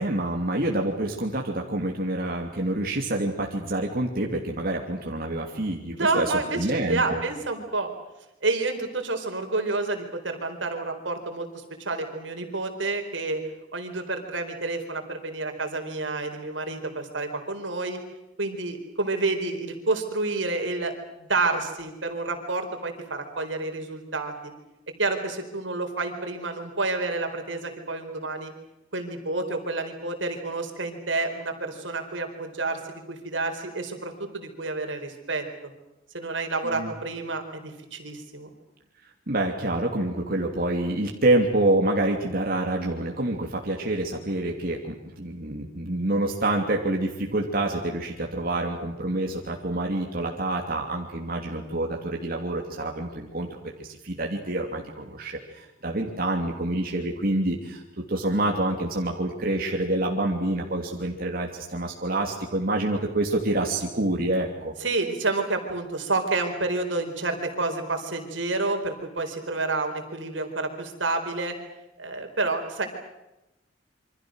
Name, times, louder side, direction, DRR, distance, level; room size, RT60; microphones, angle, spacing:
voice 1, 0.0-7.2 36.6-36.9 39.3-53.5 53.8-57.8 58.1-64.7, right 1 dB, 50° right, 0 dB, 2.9 m, -27 dB
voice 2, 5.9-7.9 8.4-13.4 13.7-18.0 18.4-20.9 21.2-24.5 25.0-28.5 28.9-35.4 36.1-38.5 64.8-71.5 72.0-72.9, right 3 dB, 80° right, 5 dB, 4.4 m, -29 dB
28.0 x 25.0 x 6.4 m, 0.94 s
head